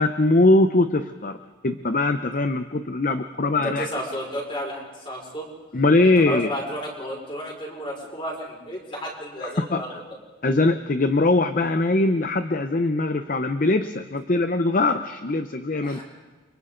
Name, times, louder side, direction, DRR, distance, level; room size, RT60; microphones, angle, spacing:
voice 1, 0.0-1.4 1.6-3.9 5.7-6.5 9.4-9.8 10.4-16.0, left 2 dB, 45° left, 8 dB, 0.7 m, -21 dB
voice 2, 3.6-5.5 6.0-10.0 15.8-16.0, equal, 25° left, -2 dB, 5.3 m, -32 dB
30.0 x 25.0 x 3.9 m, 1.2 s
head